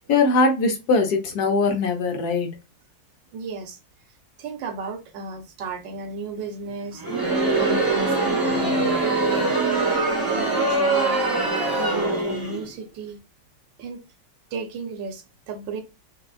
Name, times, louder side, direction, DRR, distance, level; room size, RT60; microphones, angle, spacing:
voice 1, 0.0-2.5, left 3 dB, 65° left, 1.3 m, -21 dB
voice 2, 3.3-3.8 4.4-7.0 7.6-11.2 11.8-13.2 13.8-14.0 14.5-15.8, right 4 dB, 80° right, 1.5 m, -34 dB
Crowd, 6.9-12.7, right 2 dB, 15° right, 0.7 m, -23 dB
5.1 x 2.3 x 2.4 m
omnidirectional pair, 2.0 m